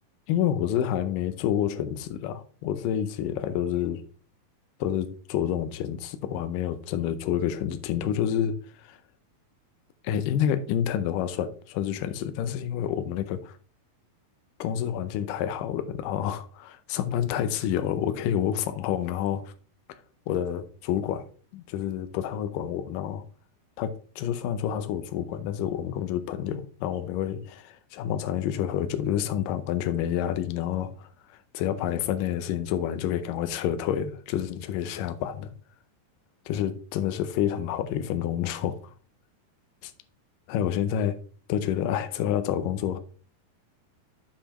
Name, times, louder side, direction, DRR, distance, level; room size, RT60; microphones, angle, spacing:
voice 1, 0.3-4.0 4.8-9.0 10.0-13.6 14.6-19.5 20.3-21.3 21.5-23.2 23.8-35.5 36.5-38.8 39.8-39.9 40.5-41.2 41.5-43.0, left 10 dB, 75° left, 2.2 m, -28 dB
7.6 x 6.7 x 3.0 m
omnidirectional pair, 4.1 m